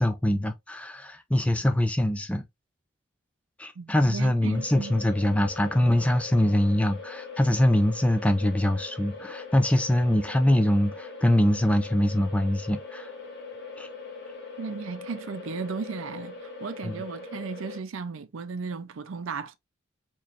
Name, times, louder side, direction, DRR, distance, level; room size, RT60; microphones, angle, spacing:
voice 1, 0.0-2.4 3.6-13.1 13.8-13.9 16.8-17.0, left 1 dB, 5° left, 0.3 m, -23 dB
voice 2, 3.8-5.0 14.6-19.6, right 5 dB, 75° right, 0.5 m, -35 dB
sound 1, 4.5-17.8, left 4 dB, 50° left, 1.2 m, -41 dB
4.2 x 3.0 x 2.4 m
head